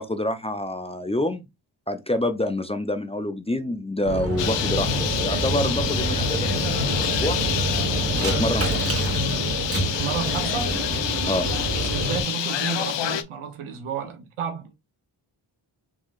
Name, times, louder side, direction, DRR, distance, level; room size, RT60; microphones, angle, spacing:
voice 1, 0.0-1.4 1.9-7.4 8.1-9.0 11.3-11.5, left 1 dB, 15° left, 0.5 m, -27 dB
sound 1, 4.1-12.2, right 1 dB, 30° right, 1.5 m, -26 dB
Bird, 4.4-13.2, left 10 dB, 60° left, 0.6 m, -28 dB
voice 2, 9.8-10.7 11.7-14.7, right 7 dB, 85° right, 0.9 m, -31 dB
3.7 x 3.1 x 2.4 m
cardioid pair, 45°, 50 cm